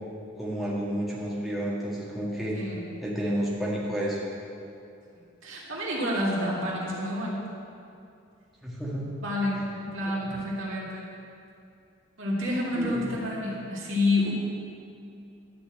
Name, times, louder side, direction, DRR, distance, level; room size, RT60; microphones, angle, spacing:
voice 1, 0.4-2.5 3.0-4.2 8.6-9.1 10.0-10.4 12.7-13.2, equal, ahead, -7 dB, 1.6 m, -31 dB
voice 2, 2.5-2.9 5.4-7.4 9.2-11.1 12.2-14.3, left 1 dB, 80° right, -5 dB, 2.3 m, -29 dB
12.0 x 4.4 x 7.8 m, 2.6 s
head